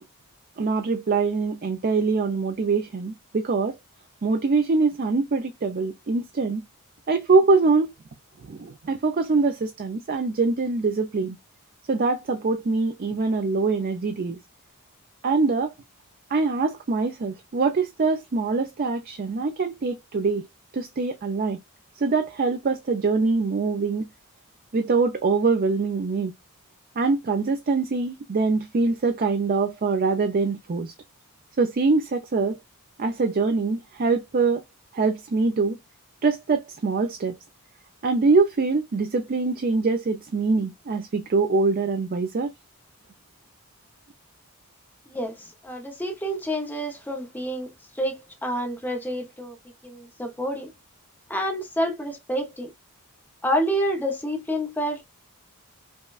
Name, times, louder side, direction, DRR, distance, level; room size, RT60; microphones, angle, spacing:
voice 1, 0.6-3.8 4.2-6.6 7.1-7.9 8.5-11.4 11.9-14.4 15.2-15.7 16.3-20.4 20.7-21.6 22.0-24.1 24.7-26.3 27.0-30.9 31.6-32.6 33.0-34.6 34.9-35.8 36.2-37.4 38.0-42.5, right 4 dB, 40° right, 0.4 m, -23 dB
voice 2, 45.1-47.7 48.0-49.5 49.8-50.7 51.3-52.7 53.4-55.0, equal, 10° left, 0.7 m, -28 dB
5.2 x 2.2 x 2.3 m
head